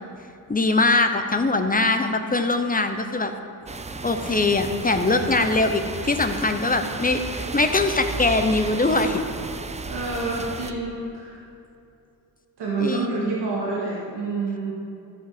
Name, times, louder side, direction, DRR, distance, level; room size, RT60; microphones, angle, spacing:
voice 1, 0.5-3.3 4.0-9.2 12.8-13.3, left 3 dB, 20° left, 7 dB, 0.7 m, -22 dB
sound 1, 3.7-10.7, right 3 dB, 20° right, 0.4 m, -33 dB
voice 2, 9.9-11.4 12.6-14.8, right 3 dB, 90° right, -6 dB, 2.0 m, -28 dB
13.5 x 5.4 x 5.0 m, 2.7 s
cardioid pair, 90°, 39 cm